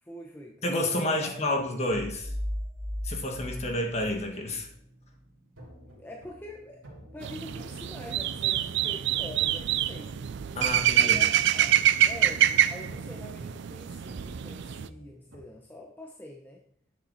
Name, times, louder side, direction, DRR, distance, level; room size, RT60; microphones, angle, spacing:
voice 1, 0.0-1.8 6.0-10.2 11.0-16.6, left 1 dB, 10° left, -1 dB, 0.9 m, -45 dB
voice 2, 0.6-2.3 3.0-4.7 10.5-11.2, left 1 dB, 30° left, 2 dB, 1.6 m, -29 dB
sound 1, 1.9-4.7, equal, 15° right, 1.1 m, -36 dB
sound 2, 4.3-15.4, right 1 dB, 85° right, 2.6 m, -51 dB
sound 3, 7.2-14.9, right 11 dB, 55° right, 0.4 m, -26 dB
10.5 x 7.3 x 4.1 m, 0.66 s
head